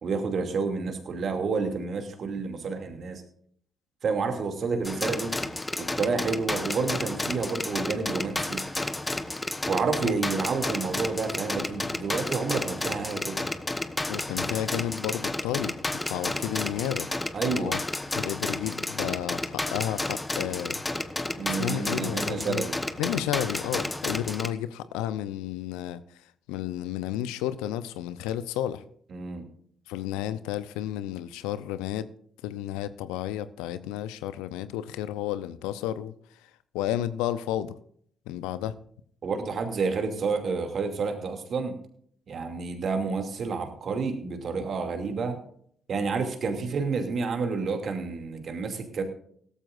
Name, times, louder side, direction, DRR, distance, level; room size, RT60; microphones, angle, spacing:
voice 1, 0.0-3.2 4.0-5.4 5.8-8.6 9.7-13.5 17.3-17.8 21.4-22.8 29.1-29.4 39.2-41.7 42.3-45.4 45.9-49.0, right 4 dB, 55° right, 5 dB, 2.6 m, -29 dB
sound 1, 4.8-24.5, left 2 dB, 20° left, 1.2 m, -32 dB
voice 2, 14.1-15.7 16.1-17.1 17.5-17.8 18.1-20.8 21.6-22.6 23.0-26.0 26.5-28.8 29.9-32.1 32.4-36.1 36.7-37.8 38.3-38.7, left 12 dB, 80° left, 14 dB, 0.6 m, -32 dB
17.0 x 14.0 x 2.6 m, 0.62 s
hypercardioid pair, 45°, 0 cm